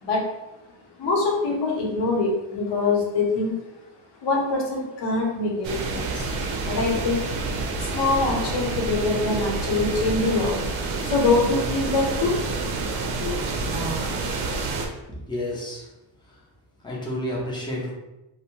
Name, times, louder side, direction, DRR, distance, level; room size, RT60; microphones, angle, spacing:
voice 1, 1.0-3.6 4.2-6.3 6.6-7.2 7.7-12.3 13.2-13.3, left 3 dB, 60° left, -1 dB, 0.8 m, -24 dB
sound 1, 5.6-14.9, right 3 dB, 75° right, 0.6 m, -28 dB
voice 2, 15.1-15.9 16.8-17.9, left 1 dB, 10° left, -3 dB, 0.4 m, -30 dB
2.6 x 2.1 x 2.8 m, 0.97 s
cardioid pair, 155°, 46 cm